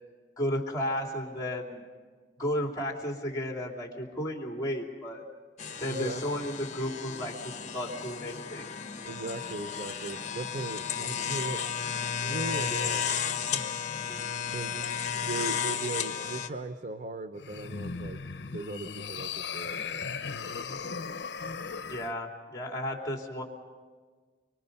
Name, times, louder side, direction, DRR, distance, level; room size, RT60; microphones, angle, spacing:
voice 1, 0.4-1.8 2.4-5.2 5.8-8.7 21.9-23.4, equal, 20° left, 1 dB, 3.1 m, -33 dB
sound 1, 5.6-16.5, left 7 dB, 45° left, 1.2 m, -33 dB
voice 2, 5.9-6.5 9.1-11.6 12.3-13.2 13.5-13.6 14.5-14.8 15.2-18.2 18.5-20.1, right 3 dB, 45° right, 8 dB, 0.7 m, -38 dB
sound 2, 17.4-22.1, left 5 dB, 75° left, 0.7 m, -37 dB
25.0 x 24.0 x 5.4 m, 1.5 s
head